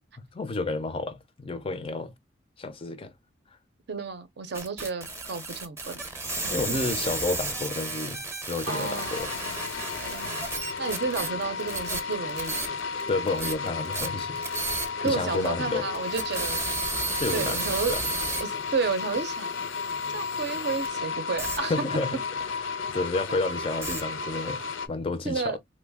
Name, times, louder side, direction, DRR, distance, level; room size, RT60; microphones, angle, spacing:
voice 1, 0.3-2.1 2.6-3.1 6.5-9.3 13.1-14.4 15.0-15.9 17.2-17.6 17.9-18.0 21.7-22.2 22.6-24.6 24.9-25.6, left 3 dB, 30° left, 0.4 m, -30 dB
voice 2, 3.9-6.0 6.4-6.8 8.7-9.6 10.0-12.6 15.0-16.6 17.3-18.0 18.4-19.5 20.1-21.9 25.2-25.6, right 4 dB, 60° right, 0.5 m, -32 dB
sound 1, 4.5-13.0 13.3-15.1 15.5-15.6 15.9-20.9 21.4-21.6 23.8-24.0, right 3 dB, 15° right, 0.6 m, -33 dB
sound 2, 8.6-24.9, left 5 dB, 80° left, 0.5 m, -33 dB
3.0 x 2.0 x 3.3 m
head